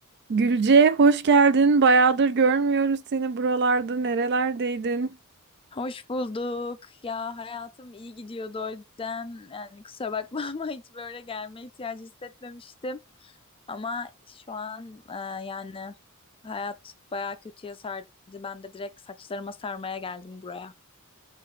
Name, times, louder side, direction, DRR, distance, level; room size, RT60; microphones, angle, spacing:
voice 1, 0.3-5.2, right 4 dB, 50° right, 0.4 m, -20 dB
voice 2, 5.7-13.3 13.7-16.0 16.4-20.7, left 4 dB, 25° left, 0.4 m, -36 dB
3.8 x 2.5 x 4.5 m
head